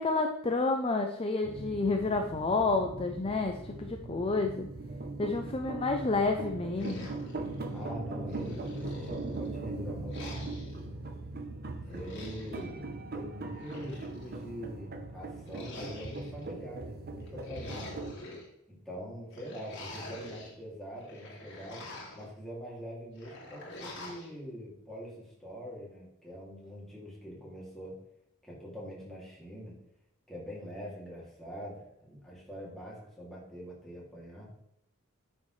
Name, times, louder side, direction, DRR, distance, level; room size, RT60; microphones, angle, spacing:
voice 1, 0.0-4.7 5.2-7.1, left 3 dB, 25° left, 4 dB, 0.5 m, -30 dB
sound 1, 1.4-18.2, right 2 dB, 45° right, 0.8 m, -40 dB
sound 2, 6.8-7.9 8.3-9.5 10.1-10.8 11.9-12.6 13.4-14.4 15.5-16.5 17.2-18.4 19.3-20.5 20.9-22.3 23.2-24.3, left 1 dB, 55° left, 2.2 m, -46 dB
voice 2, 7.7-10.6 11.8-18.0 18.4-28.0 28.4-29.8 30.3-34.5, equal, ahead, -6 dB, 2.6 m, -44 dB
9.2 x 6.3 x 3.2 m, 0.78 s
head